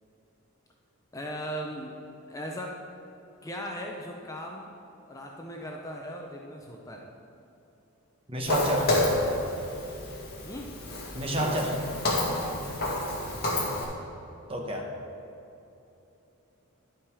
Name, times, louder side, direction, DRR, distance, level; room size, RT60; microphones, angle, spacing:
voice 1, 1.1-2.0 2.3-2.8 3.4-4.7 5.1-7.1 10.4-10.7 13.2-13.5, equal, 15° left, 0 dB, 0.6 m, -38 dB
voice 2, 8.3-9.0 11.1-11.9 12.3-12.4 14.5-14.9, equal, 25° right, 1 dB, 0.9 m, -30 dB
Walk footsteps, 8.5-13.8, left 1 dB, 45° left, 1.9 m, -29 dB
11.0 x 5.8 x 4.9 m, 2.9 s
head